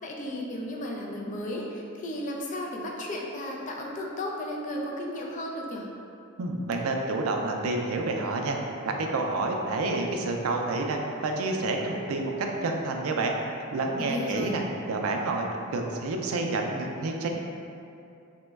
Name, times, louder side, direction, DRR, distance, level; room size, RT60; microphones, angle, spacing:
voice 1, 0.0-5.9 14.0-14.5, left 1 dB, 35° left, -1 dB, 0.3 m, -34 dB
voice 2, 6.4-8.6 8.8-12.3 12.6-13.4 13.7-17.3, right 2 dB, 70° right, 2 dB, 0.3 m, -29 dB
2.9 x 2.1 x 3.3 m, 2.6 s
head